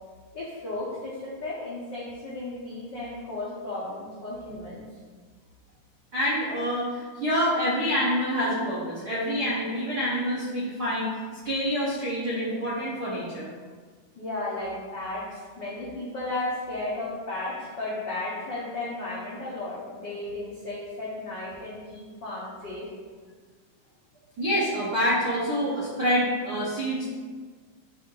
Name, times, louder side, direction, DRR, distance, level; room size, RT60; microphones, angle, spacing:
voice 1, 0.3-4.8 14.2-22.9, left 2 dB, 75° left, -7 dB, 1.0 m, -34 dB
voice 2, 6.1-13.5 24.4-27.1, equal, 65° right, -9 dB, 0.9 m, -27 dB
8.3 x 2.8 x 5.5 m, 1.5 s
omnidirectional pair, 3.9 m